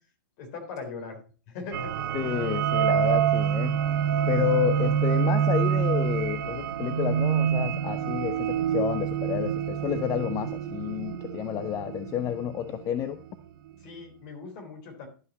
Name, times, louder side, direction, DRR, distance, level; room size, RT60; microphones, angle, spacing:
voice 1, 0.4-1.2 1.5-2.0 13.8-15.1, left 4 dB, 50° left, 4 dB, 3.3 m, -39 dB
sound 1, 1.7-13.0, right 9 dB, 65° right, 0.9 m, -27 dB
voice 2, 2.1-3.8 4.3-13.2, left 10 dB, 30° left, 12 dB, 0.5 m, -30 dB
12.0 x 5.6 x 4.1 m, 0.36 s
hypercardioid pair, 125°, 12 cm